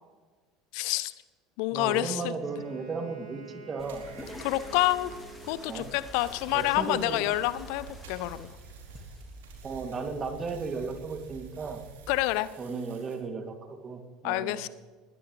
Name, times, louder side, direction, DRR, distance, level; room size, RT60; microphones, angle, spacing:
voice 1, 0.7-1.1 1.6-2.3 4.4-5.1 5.5-8.5 12.1-12.5 14.2-14.7, left 17 dB, 60° left, 16 dB, 0.7 m, -28 dB
voice 2, 1.7-4.0 5.7-5.9 6.5-7.2 9.6-11.8 12.6-14.7, right 4 dB, 30° right, 5 dB, 2.6 m, -35 dB
Wind instrument woodwind instrument, 2.4-6.1, right 4 dB, 55° right, 5.8 m, -49 dB
sound 1, 3.8-9.8, left 2 dB, 15° left, 2.1 m, -48 dB
sound 2, 3.8-13.2, right 3 dB, 75° right, 4.4 m, -48 dB
21.0 x 16.5 x 3.3 m, 1.4 s
figure-of-eight pair, 70°, 0 cm